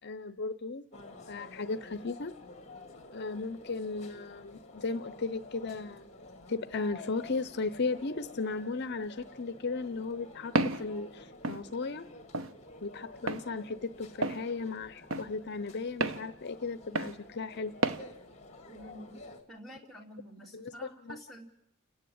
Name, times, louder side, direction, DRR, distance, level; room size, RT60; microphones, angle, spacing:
voice 1, 0.0-0.8 1.3-2.3 3.1-6.0 6.5-12.1 12.8-17.7 20.5-21.2, left 4 dB, 55° left, 12 dB, 0.7 m, -36 dB
sound 1, 0.9-19.4, left 2 dB, 30° left, 2.1 m, -50 dB
Walk footsteps, 10.6-10.8 11.4-11.6 12.3-12.5 13.3-13.4 14.2-14.4 15.1-15.3 16.0-16.2 17.0-17.2 17.8-18.0, right 2 dB, 70° right, 1.0 m, -30 dB
voice 2, 18.7-19.2 19.5-21.5, equal, ahead, -3 dB, 2.9 m, -48 dB
29.5 x 10.5 x 8.7 m, 0.83 s
head